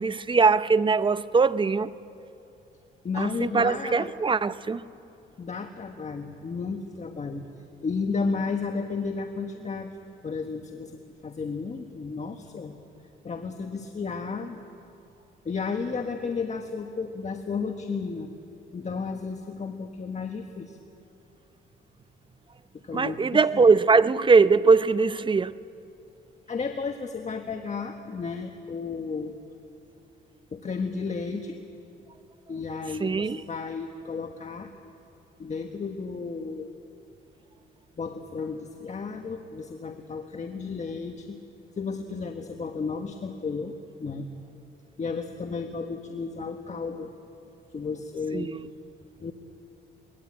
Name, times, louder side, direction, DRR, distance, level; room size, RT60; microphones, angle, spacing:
voice 1, 0.0-1.9 3.2-4.8 22.9-25.5 33.0-33.4 48.3-48.7, right 4 dB, 25° right, 0.7 m, -21 dB
voice 2, 3.0-4.1 5.4-7.5 7.8-9.9 10.2-12.8 13.2-14.6 15.4-18.3 18.7-20.8 22.7-23.7 26.5-29.3 30.5-31.6 32.5-34.7 35.4-36.7 38.0-41.4 41.8-44.3 45.0-47.1 47.7-48.5 49.2-49.3, left 4 dB, 35° left, 1.4 m, -33 dB
22.5 x 20.0 x 8.7 m
cardioid pair, 90°, 20 cm